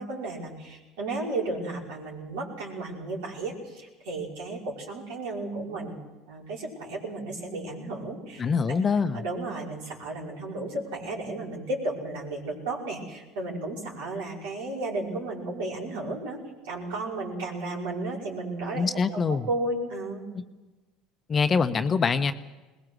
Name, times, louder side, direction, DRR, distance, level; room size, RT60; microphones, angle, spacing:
voice 1, 0.0-6.0 6.3-8.4 8.7-8.8 9.1-16.4 16.6-20.2, right 2 dB, 70° right, -2 dB, 5.5 m, -33 dB
voice 2, 8.4-9.2 18.7-19.5 21.3-22.3, left 5 dB, 35° left, 10 dB, 1.1 m, -24 dB
22.0 x 20.0 x 6.4 m, 1.1 s
hypercardioid pair, 70°, 0 cm